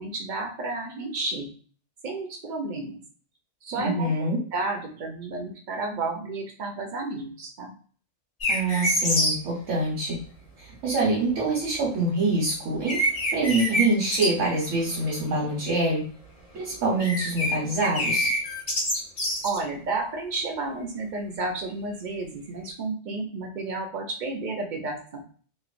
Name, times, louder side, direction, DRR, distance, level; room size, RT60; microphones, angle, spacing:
voice 1, 0.0-1.5 2.0-3.0 3.6-4.1 4.5-7.7 19.4-25.2, right 3 dB, 60° right, 2 dB, 0.5 m, -31 dB
voice 2, 3.8-4.4 8.5-10.2 10.6-13.0 13.3-16.0 16.5-18.3, right 2 dB, 90° right, -4 dB, 1.2 m, -25 dB
sound 1, 8.4-9.3 12.4-12.5 12.9-13.9 14.1-14.3 14.6-15.1 15.5-15.7 16.8-17.5 17.8-19.6, equal, 35° left, 0.8 m, -26 dB
3.0 x 2.2 x 2.4 m, 0.43 s
omnidirectional pair, 1.2 m